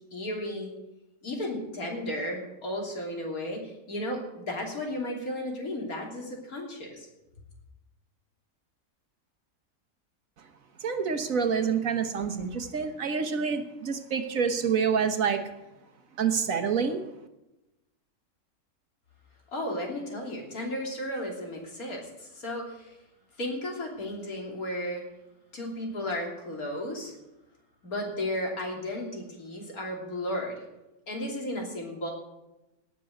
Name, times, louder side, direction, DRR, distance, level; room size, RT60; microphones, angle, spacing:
voice 1, 0.1-0.7 1.2-7.1 19.5-23.0 23.4-25.0 25.5-27.1 27.8-30.6 31.1-32.1, left 1 dB, 65° left, 0 dB, 3.6 m, -34 dB
voice 2, 10.8-15.4 16.2-17.0, right 6 dB, 60° right, 8 dB, 1.5 m, -27 dB
17.0 x 6.9 x 7.7 m, 0.96 s
omnidirectional pair, 1.6 m